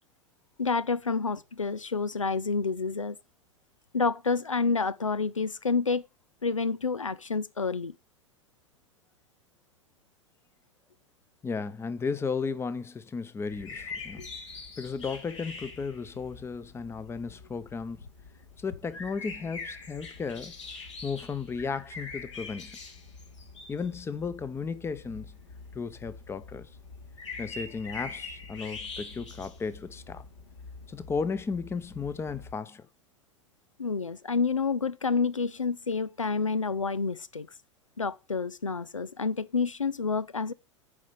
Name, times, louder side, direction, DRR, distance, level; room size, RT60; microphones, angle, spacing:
voice 1, 0.6-3.2 3.9-6.0 6.4-7.9 14.2-14.3 33.8-37.5 38.0-40.5, left 4 dB, 85° left, 0.4 m, -29 dB
voice 2, 11.4-14.2 14.8-18.0 18.6-20.5 21.0-22.8 23.7-25.3 25.7-26.7 27.4-30.3 30.9-32.9, left 5 dB, 15° left, 0.8 m, -34 dB
sound 1, 13.5-32.5, left 4 dB, 70° left, 2.9 m, -44 dB
9.7 x 5.1 x 5.6 m
figure-of-eight pair, 85°, 16 cm